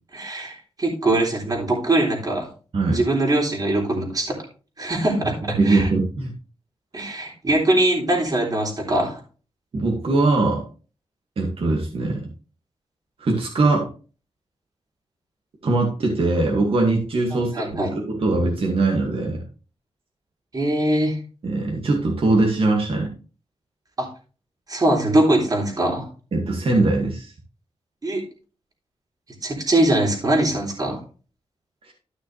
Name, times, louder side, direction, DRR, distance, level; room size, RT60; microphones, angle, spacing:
voice 1, 0.1-2.5 2.9-4.3 4.8-5.9 6.9-9.2 17.3-17.9 20.5-21.2 24.0-24.1 24.7-26.1 28.0-28.2 29.4-31.0, right 1 dB, 35° right, -2 dB, 3.4 m, -22 dB
voice 2, 5.6-6.3 9.7-10.6 11.4-12.3 13.2-13.9 15.6-19.4 21.4-23.1 26.3-27.3 31.8-31.9, right 2 dB, 55° right, 0 dB, 2.1 m, -21 dB
13.0 x 6.1 x 3.3 m, 0.36 s
wide cardioid pair, 110°, 11 cm